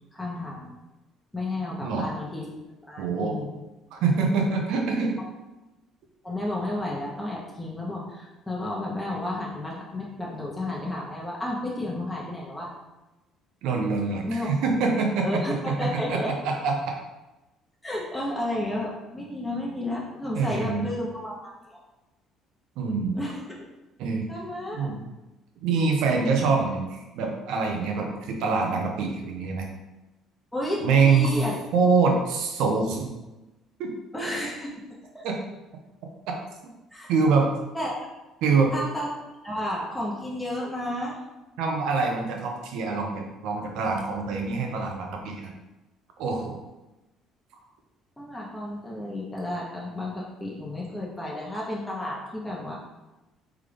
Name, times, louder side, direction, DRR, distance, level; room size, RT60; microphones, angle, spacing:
voice 1, 0.1-0.7 1.3-2.4 2.9-3.5 6.2-12.7 14.3-14.7 15.2-16.4 17.8-21.8 23.1-23.7 24.3-24.9 30.5-31.6 34.1-34.7 35.1-35.3 36.9-37.1 37.7-38.1 38.7-39.1 39.4-41.2 48.2-52.7, left 1 dB, 10° left, -4 dB, 1.1 m, -32 dB
voice 2, 3.0-3.4 3.9-5.2 13.6-15.4 15.7-16.7 20.3-20.9 22.8-23.2 24.0-24.3 24.7-25.0 25.6-29.7 30.8-31.3 31.7-33.1 33.8-33.9 35.2-35.3 37.1-37.5 38.4-38.7 41.6-45.5 46.2-46.6, right 4 dB, 75° right, 2 dB, 0.8 m, -25 dB
3.7 x 3.5 x 3.4 m, 1.0 s
supercardioid pair, 80°, 0 cm